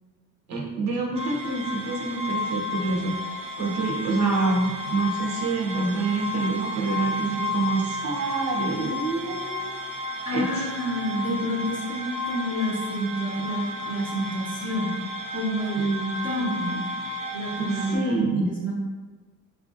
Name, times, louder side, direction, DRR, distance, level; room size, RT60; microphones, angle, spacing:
voice 1, 0.5-3.1 3.6-9.7 10.3-10.7 15.8-15.9 17.6-18.5, right 3 dB, 50° right, -2 dB, 0.7 m, -26 dB
sound 1, 1.1-18.0, left 2 dB, 20° right, 0.4 m, -33 dB
voice 2, 10.3-14.9 15.3-16.8 17.3-18.7, equal, 25° left, -4 dB, 0.7 m, -29 dB
4.5 x 2.5 x 2.5 m, 1.4 s
cardioid pair, 150°, 35 cm